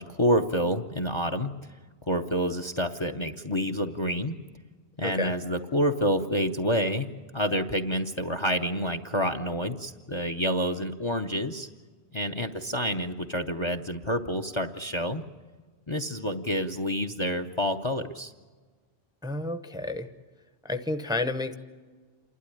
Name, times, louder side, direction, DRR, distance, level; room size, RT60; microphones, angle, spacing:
voice 1, 0.0-1.5 2.0-4.4 5.0-7.1 7.3-11.7 12.1-15.2 15.9-18.3, equal, 30° left, 8 dB, 0.7 m, -28 dB
voice 2, 5.0-5.3 19.2-20.1 20.6-21.5, left 2 dB, 5° right, 9 dB, 0.7 m, -30 dB
28.0 x 12.5 x 9.9 m, 1.5 s
omnidirectional pair, 1.1 m